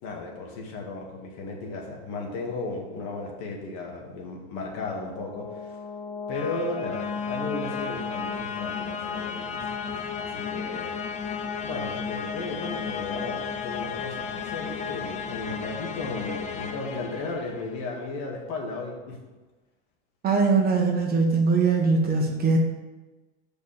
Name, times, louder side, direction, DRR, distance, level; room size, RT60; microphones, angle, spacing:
voice 1, 0.0-5.8 6.3-11.2 11.6-19.2, left 3 dB, 60° left, 0 dB, 2.2 m, -35 dB
sound 1, 4.9-17.9, left 6 dB, 20° left, 0.6 m, -34 dB
voice 2, 20.2-22.6, right 4 dB, 25° right, 0 dB, 1.6 m, -21 dB
6.8 x 5.3 x 6.7 m, 1.2 s
supercardioid pair, 125°, 34 cm